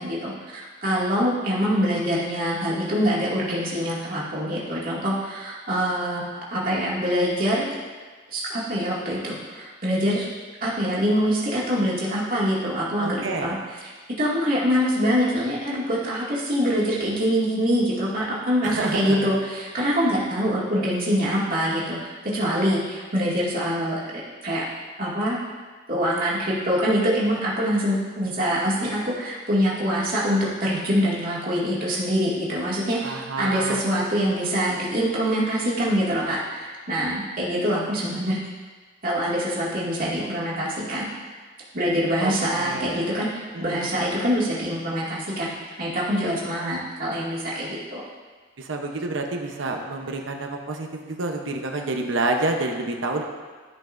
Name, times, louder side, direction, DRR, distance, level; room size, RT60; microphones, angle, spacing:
voice 1, 0.0-7.7 8.3-10.3 10.6-13.6 14.2-24.6 25.0-25.4 25.9-38.4 39.0-41.1 41.7-45.5 45.8-48.0, equal, 45° right, -7 dB, 2.1 m, -24 dB
voice 2, 13.0-13.5 18.6-19.3 33.0-33.8 42.2-43.1 43.5-43.9 48.6-53.2, right 2 dB, 70° right, 3 dB, 0.8 m, -28 dB
14.0 x 5.4 x 2.6 m, 1.4 s
head